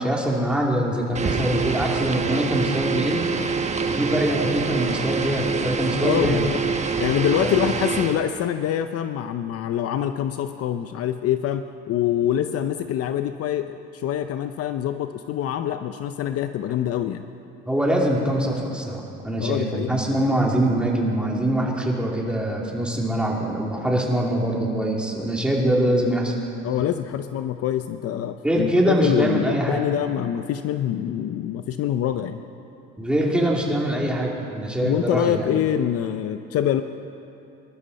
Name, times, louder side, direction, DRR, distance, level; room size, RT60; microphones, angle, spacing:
voice 1, 0.0-3.3 3.9-6.5 7.4-7.7 17.6-26.3 28.4-29.8 33.0-35.5, right 1 dB, 5° right, -3 dB, 2.9 m, -23 dB
sound 1, 1.1-8.2, right 5 dB, 25° right, 1.1 m, -25 dB
voice 2, 6.0-6.6 7.0-17.2 19.4-19.9 26.6-32.4 34.8-36.8, left 10 dB, 55° left, 9 dB, 0.7 m, -25 dB
24.5 x 12.5 x 4.2 m, 2.7 s
cardioid pair, 105°, 29 cm